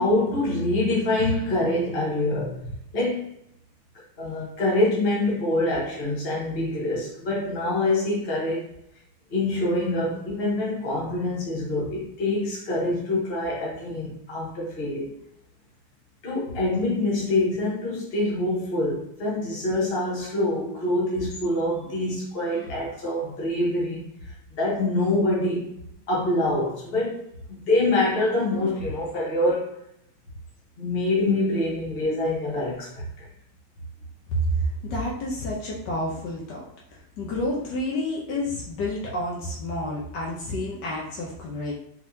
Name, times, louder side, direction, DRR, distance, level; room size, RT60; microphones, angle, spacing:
voice 1, 0.0-3.3 4.2-8.7 9.3-15.1 16.2-24.0 24.6-25.7 26.1-27.2 27.5-29.8 30.8-33.3, left 2 dB, 35° left, -5 dB, 1.3 m, -25 dB
voice 2, 34.8-36.6 37.2-41.7, left 2 dB, 80° left, -3 dB, 1.5 m, -30 dB
4.6 x 3.7 x 2.8 m, 0.75 s
omnidirectional pair, 1.9 m